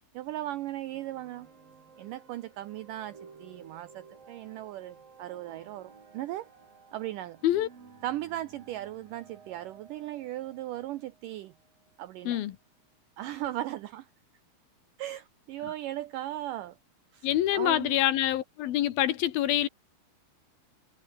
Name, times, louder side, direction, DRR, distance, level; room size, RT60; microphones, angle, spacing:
voice 1, 0.1-1.5 2.0-6.5 6.9-7.4 8.0-11.5 12.0-12.4 13.2-14.1 15.0-16.8 17.1-17.3 17.5-17.9, right 14 dB, 80° right, 1.9 m, -37 dB
sound 1, 0.8-12.1, right 5 dB, 60° right, 6.6 m, -55 dB
voice 2, 12.2-12.6 17.2-19.7, left 12 dB, 70° left, 3.0 m, -26 dB
omnidirectional pair, 4.6 m